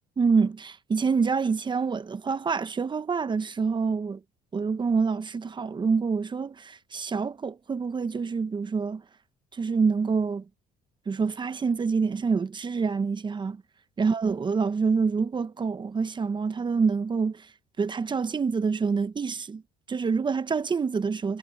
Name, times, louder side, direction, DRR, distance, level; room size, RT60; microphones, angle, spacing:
voice 1, 0.2-4.2 4.5-9.0 9.5-10.4 11.1-13.6 14.0-17.5 17.8-19.6 19.9-21.4, right 5 dB, 25° right, 0.9 m, -26 dB
cardioid pair, 110°, 17 cm